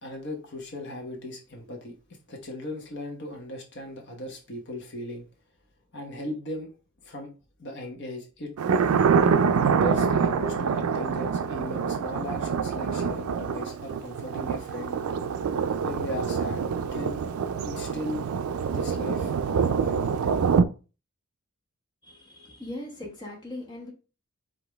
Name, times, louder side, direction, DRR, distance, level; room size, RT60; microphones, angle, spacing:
voice 1, 0.0-2.0 2.3-5.2 5.9-6.7 7.0-7.3 7.6-8.5 9.6-15.0 15.8-16.6 16.9-17.2 17.6-18.2 18.7-20.3, left 1 dB, 55° left, 1.0 m, -37 dB
Thunder, 8.6-20.6, right 6 dB, 80° right, 0.4 m, -25 dB
voice 2, 22.0-23.9, left 1 dB, 20° left, 1.1 m, -39 dB
5.0 x 2.8 x 3.4 m
head